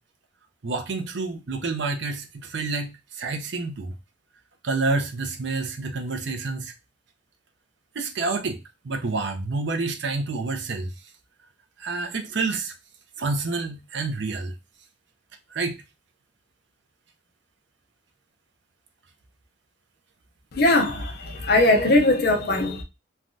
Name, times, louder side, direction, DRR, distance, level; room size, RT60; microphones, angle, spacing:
voice 1, 0.6-3.9 4.6-6.7 7.9-8.6 8.8-10.9 11.8-12.7 13.2-14.5 15.5-15.8, right 3 dB, 65° right, 0.6 m, -28 dB
voice 2, 20.5-22.8, left 2 dB, 55° left, 0.6 m, -20 dB
3.2 x 2.3 x 2.6 m
head